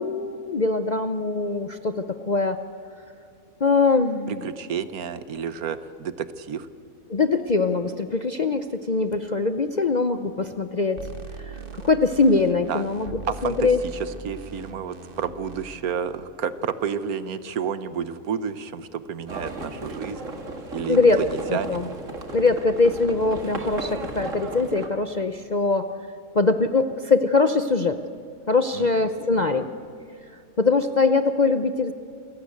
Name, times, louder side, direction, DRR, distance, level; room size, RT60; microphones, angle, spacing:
voice 1, 0.0-2.6 3.6-4.4 7.1-11.0 11.4-13.8 20.9-21.2 21.5-21.9 22.3-25.9 26.3-28.0 28.5-29.7 30.6-31.9, left 3 dB, 45° left, 9 dB, 0.6 m, -22 dB
voice 2, 4.3-6.7 12.7-12.8 13.3-20.3 20.7-21.8 28.7-28.9, right 7 dB, 70° right, 14 dB, 1.4 m, -30 dB
sound 1, 11.0-15.7, right 3 dB, 35° right, 1.4 m, -40 dB
Livestock farm animals working animals, 19.3-24.9, right 2 dB, 55° right, 2.4 m, -35 dB
28.0 x 17.0 x 8.4 m, 2.4 s
omnidirectional pair, 1.6 m